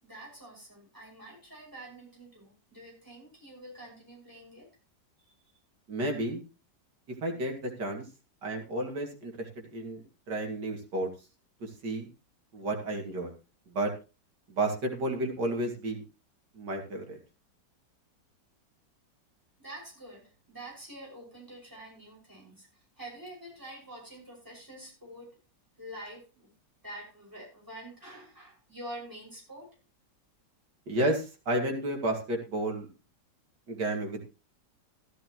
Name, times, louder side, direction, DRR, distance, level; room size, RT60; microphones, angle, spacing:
voice 1, 0.0-4.7 5.2-5.3 19.6-22.7 23.0-25.4 25.8-26.5 26.8-29.7, right 1 dB, 10° right, -3 dB, 6.1 m, -46 dB
voice 2, 5.9-6.4 7.2-8.0 8.4-11.1 11.6-12.1 12.5-13.3 13.7-13.9 14.5-16.0 16.5-17.2 30.9-32.9 33.7-34.2, right 1 dB, 70° right, 2 dB, 3.0 m, -32 dB
14.0 x 11.5 x 3.1 m, 0.31 s
omnidirectional pair, 1.9 m